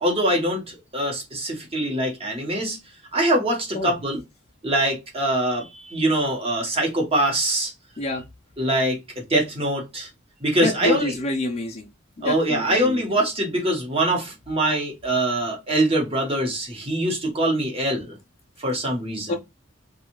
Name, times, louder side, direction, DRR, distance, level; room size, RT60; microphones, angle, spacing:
voice 1, 0.0-2.8 3.1-4.2 4.6-7.7 8.6-10.1 10.4-11.1 12.2-18.1 18.6-19.4, right 1 dB, 30° right, 1.0 m, -23 dB
voice 2, 10.6-11.9 12.2-13.1 19.3-19.4, left 1 dB, 30° left, 0.4 m, -27 dB
2.6 x 2.3 x 2.9 m
head